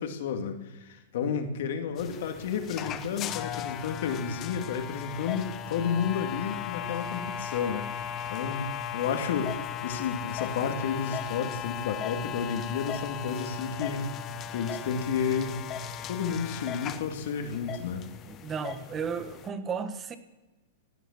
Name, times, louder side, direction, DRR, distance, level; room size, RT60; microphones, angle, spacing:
voice 1, 0.0-7.9 8.3-14.1 14.5-15.6 16.1-18.0, left 6 dB, 65° left, 5 dB, 2.1 m, -31 dB
sound 1, 2.0-19.5, left 9 dB, 35° left, 0.9 m, -37 dB
voice 2, 18.3-20.2, right 6 dB, 25° right, 11 dB, 1.4 m, -34 dB
17.0 x 9.2 x 7.1 m, 1.1 s
hypercardioid pair, 110°, 0 cm